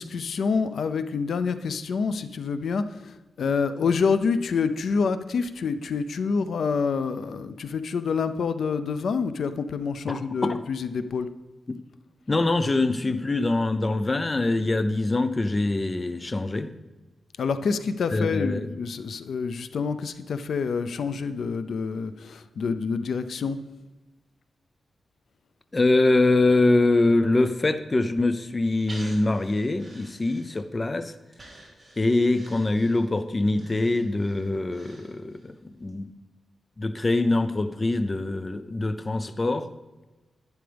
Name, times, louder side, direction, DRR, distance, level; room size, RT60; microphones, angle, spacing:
voice 1, 0.0-11.3 17.4-23.6, left 5 dB, 70° left, 11 dB, 0.5 m, -27 dB
voice 2, 10.1-10.6 12.3-16.7 18.1-18.7 25.7-31.1 32.0-35.5 35.8-36.1 36.8-39.7, left 2 dB, 25° left, 10 dB, 0.6 m, -24 dB
Breathing, 28.9-30.9 31.3-35.5 35.9-36.0, right 1 dB, 25° right, 3.2 m, -48 dB
11.5 x 9.8 x 3.4 m, 1.1 s
wide cardioid pair, 130°, 0 cm